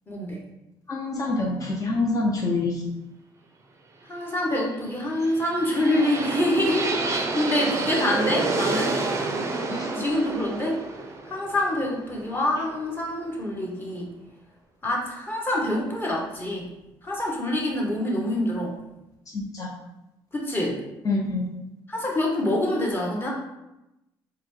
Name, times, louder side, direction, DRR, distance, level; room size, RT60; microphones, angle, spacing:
voice 1, 0.1-0.4 4.1-8.9 10.0-10.8 11.3-14.1 14.8-16.7 17.0-18.7 20.3-20.8 21.9-23.3, left 1 dB, 20° left, -2 dB, 1.1 m, -26 dB
voice 2, 0.9-2.9 9.7-9.9 19.3-19.7 21.0-21.5, left 3 dB, 40° left, -1 dB, 0.6 m, -26 dB
sound 1, 5.0-13.0, right 3 dB, 30° right, 0.5 m, -29 dB
3.9 x 2.2 x 3.1 m, 0.92 s
cardioid pair, 95°, 9 cm